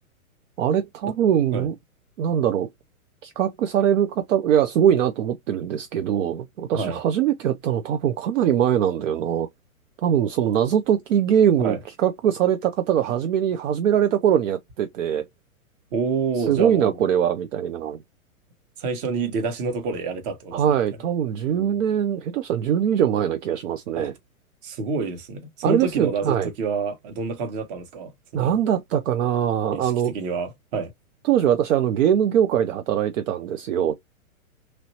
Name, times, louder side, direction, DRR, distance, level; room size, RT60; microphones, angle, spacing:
voice 1, 0.6-1.7 2.2-2.7 3.2-9.5 10.0-15.3 16.4-18.0 20.5-24.1 25.6-26.5 28.3-30.1 31.2-34.0, right 9 dB, 60° right, 0.6 m, -22 dB
voice 2, 15.9-16.9 18.8-20.6 21.5-21.7 24.0-24.1 24.6-28.5 29.7-30.9, right 4 dB, 40° right, 1.2 m, -28 dB
3.1 x 2.6 x 2.8 m
hypercardioid pair, 130°, 43 cm